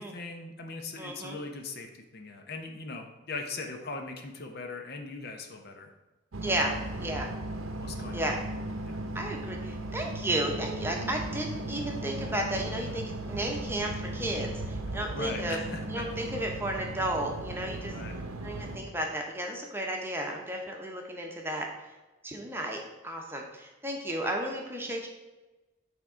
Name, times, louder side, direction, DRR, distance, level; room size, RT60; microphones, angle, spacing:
voice 1, 0.0-5.9 6.6-6.8 7.8-8.5 8.9-9.0 10.9-11.2 15.1-16.1 17.9-18.2, left 3 dB, 50° left, 4 dB, 0.8 m, -40 dB
voice 2, 1.0-1.4 6.4-6.7 7.0-7.3 8.1-8.4 9.1-15.6 15.9-17.9 18.4-21.7 22.2-25.1, right 1 dB, 10° right, 1 dB, 0.9 m, -33 dB
sound 1, 6.3-18.8, right 1 dB, 85° right, 0.8 m, -37 dB
8.7 x 3.6 x 5.0 m, 1.1 s
head